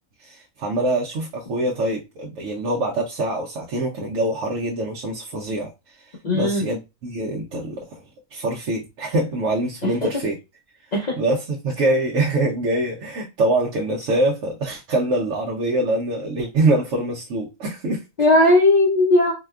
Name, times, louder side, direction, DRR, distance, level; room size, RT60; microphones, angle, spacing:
voice 1, 0.2-5.7 6.3-8.0 8.3-10.4 11.2-18.0, right 2 dB, 70° right, 0.9 m, -24 dB
voice 2, 6.2-6.7 10.0-10.2 10.9-11.2 18.2-19.3, left 2 dB, 50° left, 0.5 m, -17 dB
4.1 x 2.2 x 2.3 m
omnidirectional pair, 1.5 m